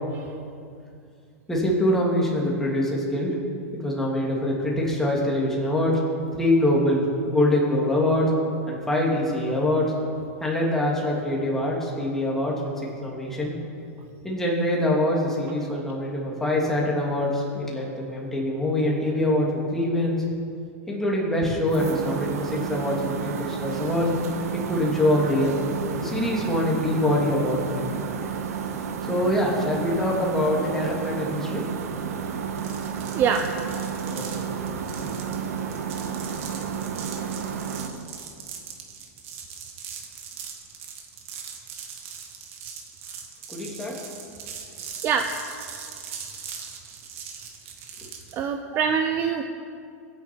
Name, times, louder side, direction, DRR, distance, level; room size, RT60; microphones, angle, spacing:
voice 1, 1.5-3.4 3.7-6.0 6.3-8.3 8.7-9.9 10.4-12.6 13.0-13.5 14.2-20.3 20.9-24.1 24.5-25.6 26.0-28.2 29.1-31.6 34.1-34.4 35.0-35.1 43.5-44.0, left 1 dB, 5° left, -4 dB, 3.0 m, -24 dB
sound 1, 21.7-37.9, right 7 dB, 85° right, 1.5 m, -31 dB
sound 2, 32.6-48.4, right 7 dB, 60° right, 2.4 m, -40 dB
voice 2, 33.1-33.5 45.0-45.3 48.3-49.4, right 7 dB, 25° right, 6 dB, 0.7 m, -23 dB
22.5 x 10.5 x 4.7 m, 2.4 s
supercardioid pair, 155°, 8 cm